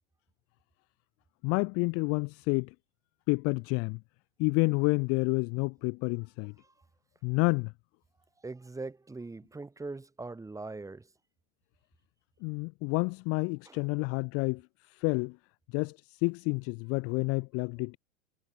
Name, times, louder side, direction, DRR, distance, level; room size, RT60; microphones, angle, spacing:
voice 1, 1.4-2.7 3.3-4.0 4.4-6.5 7.2-7.7 12.4-14.6 14.9-15.4 15.7-18.0, left 31 dB, 35° left, 0.6 m, -29 dB
voice 2, 8.4-11.1 13.7-13.8, right 3 dB, 5° right, 1.9 m, -41 dB
hypercardioid pair, 115°, 42 cm